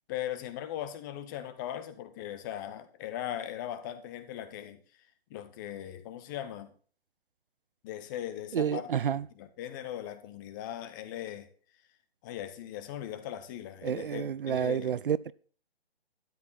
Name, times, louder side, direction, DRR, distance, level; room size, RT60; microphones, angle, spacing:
voice 1, 0.1-4.8 5.3-6.7 7.8-8.9 9.4-11.5 12.2-14.9, left 11 dB, 20° left, 0.9 m, -39 dB
voice 2, 8.5-9.2 13.8-15.3, right 8 dB, 55° right, 0.5 m, -29 dB
12.5 x 10.5 x 4.1 m
figure-of-eight pair, 145°, 31 cm